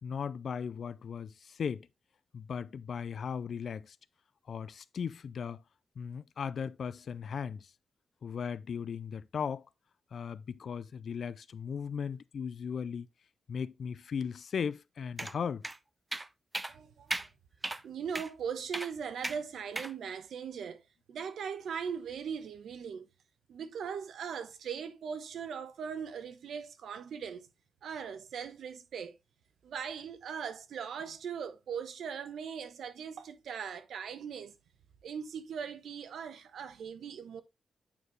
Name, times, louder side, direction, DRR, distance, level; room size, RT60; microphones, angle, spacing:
voice 1, 0.0-1.9 2.3-4.0 4.5-5.6 6.0-7.7 8.2-9.7 10.1-13.1 13.5-15.7, left 7 dB, 60° left, 0.4 m, -37 dB
sound 1, 15.2-15.3 15.6-15.8 16.1-16.3 16.5-16.7 17.1-17.3 17.6-17.8 18.1-18.3 18.7-18.9 19.2-19.4 19.8-19.9, right 2 dB, 15° right, 0.4 m, -36 dB
voice 2, 16.7-17.3 17.8-20.8 21.1-23.1 23.5-27.5 27.8-29.1 29.6-34.5 35.0-37.4, right 7 dB, 85° right, 1.0 m, -40 dB
8.8 x 4.6 x 3.1 m
wide cardioid pair, 135°, 0 cm